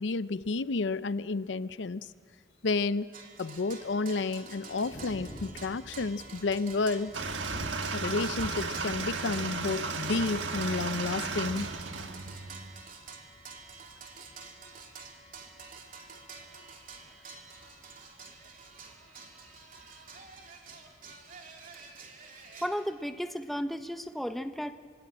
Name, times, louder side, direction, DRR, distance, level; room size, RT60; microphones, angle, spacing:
voice 1, 0.0-2.0 2.6-3.1 3.4-7.1 7.9-11.7, left 3 dB, 75° left, 15 dB, 0.6 m, -31 dB
sound 1, 3.1-22.8, right 5 dB, 45° right, 2.7 m, -48 dB
Thunder, 3.8-21.7, left 1 dB, 40° left, 1.6 m, -51 dB
sound 2, 7.1-12.8, right 4 dB, 90° right, 1.5 m, -35 dB
voice 2, 22.6-24.7, equal, ahead, 8 dB, 0.7 m, -34 dB
26.0 x 21.0 x 8.6 m, 2.2 s
head